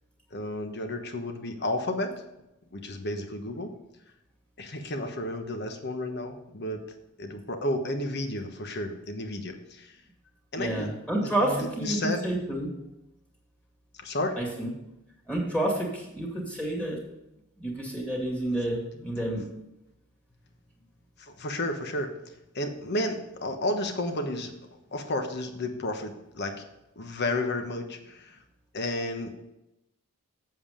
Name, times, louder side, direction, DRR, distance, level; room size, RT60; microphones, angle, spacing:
voice 1, 0.3-2.2 2.7-3.7 4.6-6.8 7.2-10.0 10.5-10.9 11.2-12.2 14.0-14.4 19.2-19.3 21.2-22.1 22.5-24.5 24.9-26.5 27.0-28.4 28.7-29.3, left 1 dB, 50° left, 6 dB, 1.1 m, -32 dB
voice 2, 10.6-12.7 14.4-14.7 15.3-17.0 17.6-19.5, right 1 dB, 5° left, -1 dB, 2.2 m, -29 dB
7.8 x 7.5 x 5.1 m, 0.90 s
head